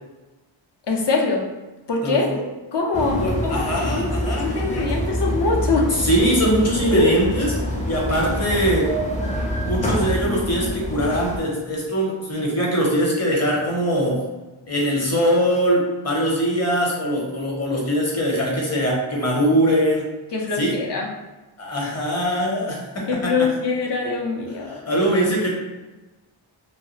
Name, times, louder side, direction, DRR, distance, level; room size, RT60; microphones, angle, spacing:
voice 1, 0.9-1.5 1.9-2.3 2.7-5.9 6.9-7.2 20.3-21.1 21.8-21.9 23.1-24.8, left 3 dB, 60° left, 0 dB, 0.7 m, -23 dB
voice 2, 2.0-2.4 3.2-4.8 6.0-7.5 7.9-8.9 9.2-9.4 9.6-14.2 14.7-20.0 20.6-20.8 21.6-23.5 24.9-25.6, equal, 30° left, -3 dB, 0.9 m, -22 dB
sound 1, 2.9-11.4, equal, 15° left, 0.5 m, -26 dB
2.3 x 2.0 x 3.1 m, 1.1 s
cardioid pair, 55°, 48 cm